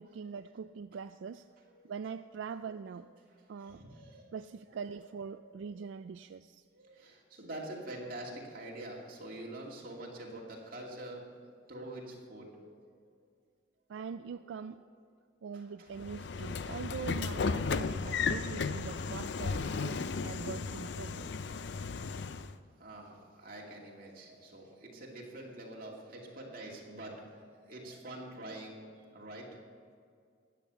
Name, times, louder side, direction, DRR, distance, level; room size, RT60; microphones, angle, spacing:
voice 1, 0.0-1.4 1.8-3.1 3.5-3.8 4.3-6.6 13.9-14.8 15.4-21.3, right 6 dB, 80° right, 10 dB, 0.3 m, -43 dB
voice 2, 3.3-4.3 5.3-5.5 6.7-11.2 11.7-12.6 14.5-14.7 15.5-15.9 22.2-22.5 22.8-28.8 29.1-29.5, right 1 dB, 50° right, -2 dB, 2.5 m, -46 dB
Train / Sliding door, 16.0-22.5, left 4 dB, 65° left, 0.5 m, -35 dB
13.0 x 9.2 x 6.9 m, 2.2 s
head